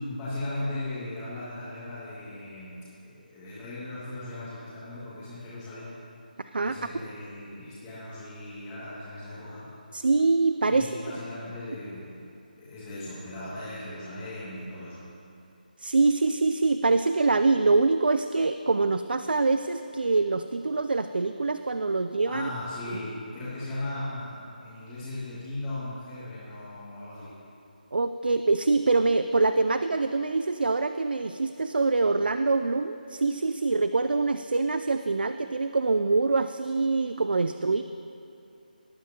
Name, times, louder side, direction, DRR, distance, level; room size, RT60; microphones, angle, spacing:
voice 1, 0.0-5.9 6.6-9.7 10.6-12.2 12.6-15.0 22.3-27.3, left 1 dB, 10° left, -14 dB, 2.1 m, -37 dB
voice 2, 9.9-10.9 15.8-22.5 22.9-23.0 27.9-37.8, right 3 dB, 85° right, 10 dB, 0.4 m, -24 dB
19.5 x 9.2 x 2.9 m, 2.7 s
figure-of-eight pair, 170°, 5 cm